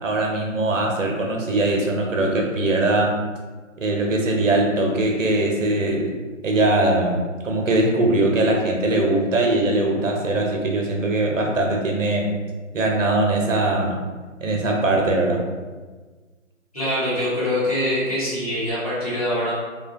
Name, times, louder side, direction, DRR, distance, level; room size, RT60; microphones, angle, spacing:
voice 1, 0.0-3.2 3.8-6.2 6.4-12.3 12.7-14.0 14.4-15.4, right 2 dB, 70° right, 0 dB, 0.7 m, -21 dB
voice 2, 16.7-19.5, left 1 dB, 30° left, -11 dB, 1.0 m, -24 dB
2.7 x 2.2 x 2.5 m, 1.3 s
hypercardioid pair, 180°, 40 cm